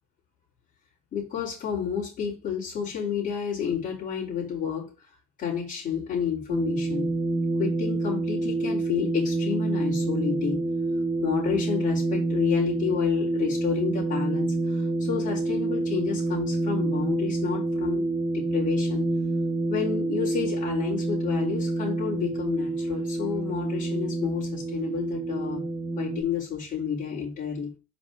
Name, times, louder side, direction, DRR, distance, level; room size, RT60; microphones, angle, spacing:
voice 1, 1.1-4.9 5.4-7.1 7.6-10.6 11.2-18.0 18.3-19.1 19.7-25.7 26.0-27.7, left 8 dB, 50° left, 3.5 m, -30 dB
sound 1, 6.5-26.2, right 2 dB, 30° right, 2.5 m, -27 dB
5.4 x 5.2 x 3.9 m
cardioid pair, 110°, 17 cm